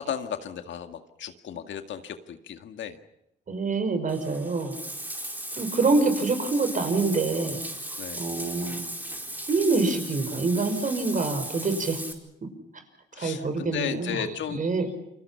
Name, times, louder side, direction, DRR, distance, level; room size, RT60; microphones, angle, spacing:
voice 1, 0.0-3.0 8.0-8.2 13.1-14.6, left 8 dB, 70° left, 7 dB, 2.0 m, -34 dB
voice 2, 3.5-4.8 5.5-7.6 8.2-8.9 9.5-12.0 13.2-14.2 14.5-14.9, right 3 dB, 40° right, 8 dB, 5.5 m, -26 dB
Bathtub (filling or washing), 4.1-12.1, right 1 dB, 10° right, 4.6 m, -37 dB
29.0 x 25.0 x 5.8 m, 0.83 s
cardioid pair, 90°, 20 cm